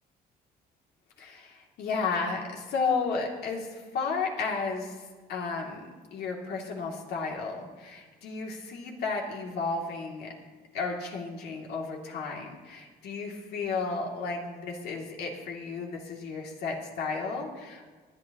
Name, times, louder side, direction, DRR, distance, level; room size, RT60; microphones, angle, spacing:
voice 1, 1.2-5.0 5.3-10.3 10.7-17.9, left 4 dB, 75° left, 0 dB, 2.7 m, -33 dB
25.5 x 8.9 x 3.0 m, 1.4 s
cardioid pair, 110°, 17 cm